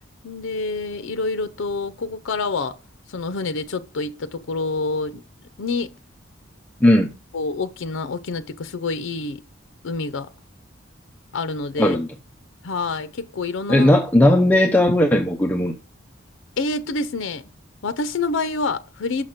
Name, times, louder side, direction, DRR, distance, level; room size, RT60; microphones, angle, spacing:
voice 1, 0.2-2.8 3.1-5.2 5.6-5.9 7.3-9.4 9.8-10.3 11.3-12.0 12.6-13.9 16.6-17.4 17.8-19.2, left 3 dB, 75° left, 0.5 m, -27 dB
voice 2, 11.8-12.1 13.7-15.7, left 1 dB, 10° left, 0.5 m, -16 dB
6.2 x 5.8 x 5.0 m
head